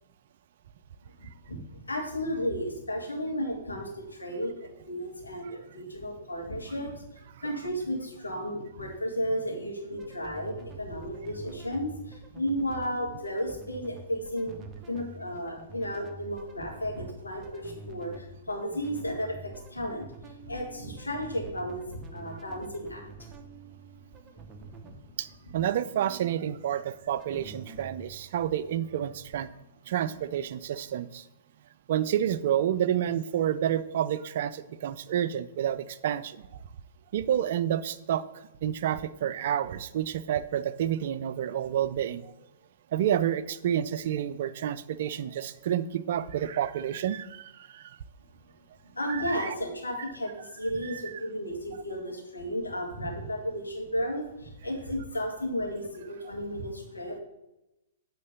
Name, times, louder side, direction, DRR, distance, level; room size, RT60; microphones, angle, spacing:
voice 1, 1.5-14.6 14.9-23.0 24.9-25.0 48.9-57.2, equal, 85° left, 0 dB, 2.1 m, -33 dB
sound 1, 9.9-29.4, right 4 dB, 20° right, 0.8 m, -48 dB
voice 2, 25.2-29.5 29.9-31.2 31.9-36.5 37.1-42.3 42.9-48.0 49.1-49.5 50.8-51.0, right 10 dB, 55° right, 14 dB, 0.4 m, -29 dB
8.3 x 3.8 x 6.8 m, 0.93 s
figure-of-eight pair, 115°, 0 cm